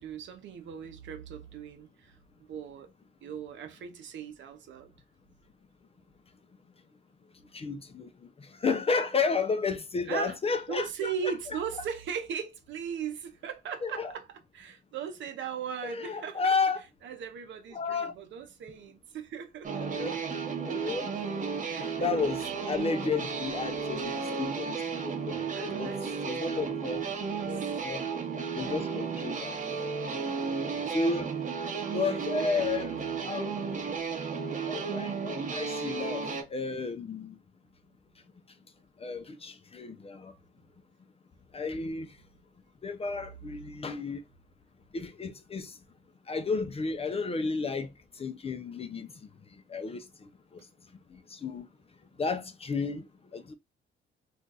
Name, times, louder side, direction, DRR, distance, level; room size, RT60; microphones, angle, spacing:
voice 1, 0.0-2.9 3.2-4.9 10.1-10.4 10.7-16.6 17.0-20.1 21.1-21.3 21.7-22.1 25.5-26.4 27.3-27.7 30.1-30.3 32.0-32.6, right 7 dB, 70° right, 0.7 m, -39 dB
voice 2, 7.5-8.1 8.6-11.1 13.8-14.1 15.8-16.8 17.7-18.1 19.8-20.2 20.6-21.1 22.0-25.9 26.2-27.0 27.4-28.0 28.6-29.9 30.5-31.3 31.9-32.9 33.2-33.5 34.7-37.4 39.0-40.3 41.5-42.1 42.8-44.2 44.9-45.7 46.3-47.9 48.2-49.1 49.7-50.0 51.1-51.7 52.2-53.0 53.3-53.5, left 4 dB, 30° left, 0.5 m, -32 dB
sound 1, 19.6-36.4, right 5 dB, 40° right, 0.9 m, -33 dB
2.5 x 2.3 x 3.9 m
cardioid pair, 90°, 20 cm